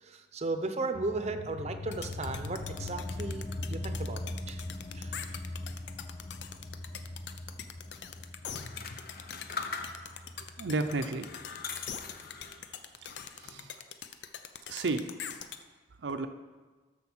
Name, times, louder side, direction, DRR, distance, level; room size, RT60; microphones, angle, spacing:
voice 1, 0.0-4.2 4.5-4.6 4.9-5.1, right 2 dB, 40° right, 8 dB, 0.7 m, -35 dB
sound 1, 0.9-12.0, left 2 dB, 35° left, 0.5 m, -41 dB
sound 2, 1.9-15.6, left 8 dB, 85° left, 0.6 m, -43 dB
sound 3, 8.5-10.3 10.8-12.6 13.0-13.7, left 5 dB, 60° left, 0.8 m, -41 dB
voice 2, 10.6-11.3 13.4-13.8 14.7-15.4 16.0-16.3, right 3 dB, 85° right, 7 dB, 0.6 m, -32 dB
13.0 x 4.6 x 6.1 m, 1.3 s
head